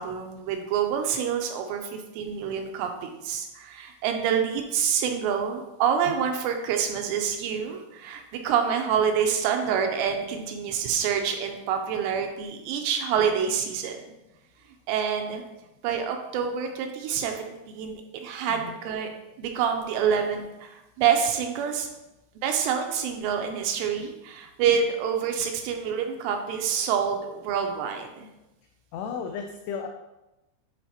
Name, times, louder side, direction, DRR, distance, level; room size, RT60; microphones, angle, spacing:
voice 1, 0.0-14.0 14.9-15.4 15.8-17.4 17.7-19.1 19.4-21.9 22.4-28.3, right 7 dB, 80° right, 4 dB, 2.7 m, -27 dB
voice 2, 28.9-29.9, left 6 dB, 90° left, 4 dB, 2.3 m, -34 dB
10.0 x 4.6 x 2.9 m, 0.97 s
omnidirectional pair, 5.2 m